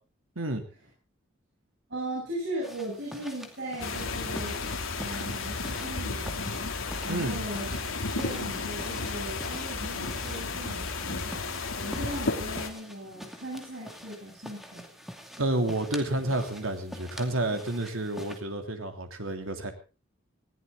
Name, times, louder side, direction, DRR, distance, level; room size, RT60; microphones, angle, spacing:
voice 1, 1.9-4.6 5.0-6.6 7.0-7.7 8.0-11.3 11.8-14.9, right 1 dB, 60° right, -3 dB, 7.1 m, -38 dB
sound 1, 2.6-18.4, equal, ahead, 2.5 m, -46 dB
sound 2, 3.8-12.7, left 3 dB, 80° left, 2.6 m, -33 dB
voice 2, 7.1-7.4 15.4-19.7, right 1 dB, 85° right, 5 dB, 3.1 m, -30 dB
20.0 x 16.0 x 3.9 m, 0.33 s
head